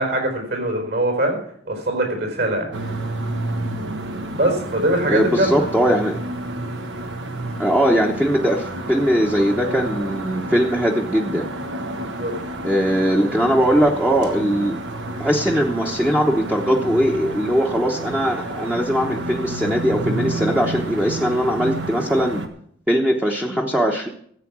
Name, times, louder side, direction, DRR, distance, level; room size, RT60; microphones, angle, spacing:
voice 1, 0.0-1.4 1.6-2.7 4.3-5.5 11.9-12.3, right 1 dB, 60° right, 4 dB, 4.3 m, -22 dB
sound 1, 2.7-22.5, right 1 dB, 85° right, 1.4 m, -30 dB
voice 2, 5.1-6.2 7.6-11.5 12.6-14.8 15.2-22.4 22.9-24.1, equal, 5° right, -1 dB, 0.9 m, -20 dB
14.5 x 8.3 x 6.1 m, 0.65 s
head